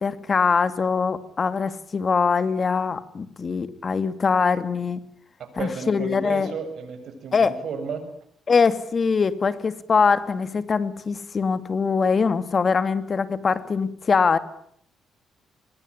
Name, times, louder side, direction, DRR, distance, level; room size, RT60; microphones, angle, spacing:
voice 1, 0.0-5.0 5.6-6.5 7.3-7.6 8.5-14.4, left 5 dB, 40° left, 12 dB, 2.4 m, -22 dB
voice 2, 5.4-8.0, right 5 dB, 65° right, 8 dB, 7.4 m, -33 dB
25.5 x 22.0 x 9.9 m, 0.68 s
cardioid pair, 90°, 0 cm